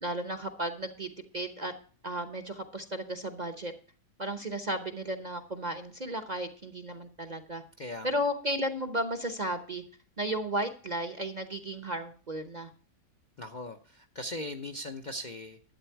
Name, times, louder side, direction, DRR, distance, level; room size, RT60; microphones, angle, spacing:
voice 1, 0.0-1.1 1.3-1.7 2.0-3.7 4.2-7.6 8.0-9.8 10.2-12.7, right 1 dB, 35° right, 7 dB, 0.8 m, -34 dB
voice 2, 7.8-8.2 13.4-15.8, left 1 dB, 40° left, 6 dB, 0.7 m, -39 dB
12.0 x 8.7 x 4.5 m, 0.42 s
omnidirectional pair, 1.6 m